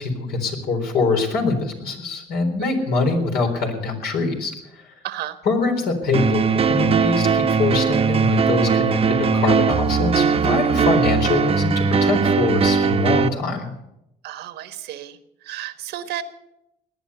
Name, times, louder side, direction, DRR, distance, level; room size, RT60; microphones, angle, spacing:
voice 1, 0.0-4.9 5.4-13.7, left 3 dB, 70° left, 3 dB, 3.9 m, -24 dB
voice 2, 5.0-5.4 14.2-15.2 15.4-16.2, right 12 dB, 80° right, 10 dB, 1.3 m, -32 dB
sound 1, 6.1-13.3, right 5 dB, 35° right, 0.9 m, -19 dB
18.5 x 10.5 x 6.8 m, 0.85 s
cardioid pair, 110°, 17 cm